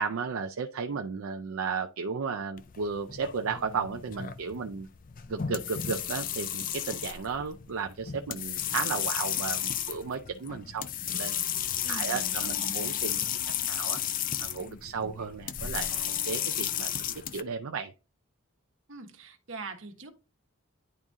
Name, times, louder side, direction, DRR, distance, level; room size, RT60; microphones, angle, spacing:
voice 1, 0.0-4.9 5.3-10.9 11.1-11.4 11.7-13.2 13.7-14.0 14.4-17.9, right 5 dB, 75° right, 0.5 m, -34 dB
sound 1, 2.6-17.4, left 10 dB, 40° left, 0.4 m, -33 dB
voice 2, 11.8-12.7 18.9-20.1, right 3 dB, 60° right, 1.2 m, -43 dB
10.5 x 3.6 x 2.7 m
head